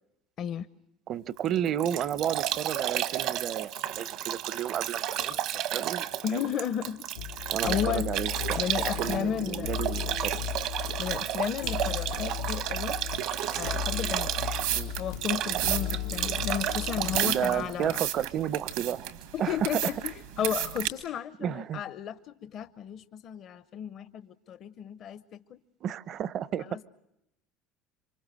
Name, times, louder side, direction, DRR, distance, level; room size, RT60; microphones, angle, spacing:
voice 1, 0.4-0.7 6.2-7.1 7.6-8.1 8.6-9.7 11.0-13.0 13.5-14.3 15.0-18.0 19.3-25.6 26.6-26.8, left 9 dB, 50° left, 0.8 m, -33 dB
voice 2, 1.1-6.4 7.5-8.6 9.0-10.4 14.5-14.9 17.2-19.1 19.4-19.8 21.4-21.8 25.8-26.7, right 10 dB, 50° right, 0.8 m, -32 dB
Bathtub (filling or washing) / Drip / Trickle dribble, 1.4-18.6, right 11 dB, 65° right, 1.2 m, -32 dB
sound 1, 7.2-17.6, left 11 dB, 85° left, 0.9 m, -36 dB
sound 2, 14.3-20.9, right 13 dB, 85° right, 2.2 m, -33 dB
27.5 x 24.5 x 6.4 m
supercardioid pair, 90°, 0 cm